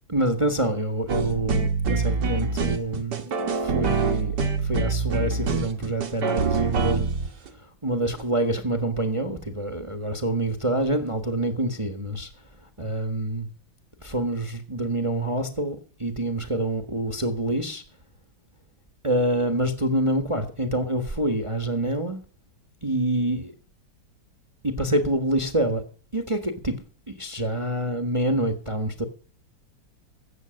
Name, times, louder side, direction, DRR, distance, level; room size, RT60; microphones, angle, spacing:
voice 1, 0.1-4.4 4.6-7.1 7.8-12.3 12.8-13.5 14.0-17.8 19.0-22.2 22.8-23.4 24.6-25.8 26.1-26.7 27.1-29.0, right 1 dB, 15° right, 1.3 m, -26 dB
sound 1, 1.1-7.5 8.2-8.3, right 4 dB, 55° right, 1.9 m, -25 dB
14.0 x 8.3 x 6.4 m
omnidirectional pair, 2.3 m